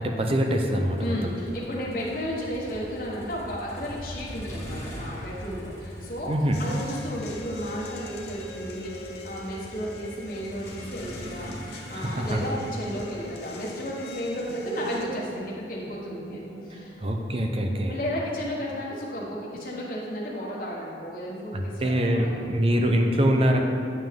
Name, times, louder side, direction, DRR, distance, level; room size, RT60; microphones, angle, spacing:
voice 1, 0.0-1.1 6.3-6.6 11.9-12.4 16.7-18.0 21.5-23.6, equal, 35° right, 3 dB, 0.5 m, -24 dB
Motor vehicle (road), 0.9-17.0, equal, 15° left, 1.4 m, -43 dB
voice 2, 1.0-6.3 6.6-17.0 17.9-22.4, equal, 50° left, -6 dB, 1.2 m, -33 dB
sound 1, 6.5-15.0, left 4 dB, 75° left, 0.8 m, -44 dB
sound 2, 10.8-18.7, right 1 dB, 55° right, 1.0 m, -45 dB
8.9 x 5.7 x 3.6 m, 2.5 s
head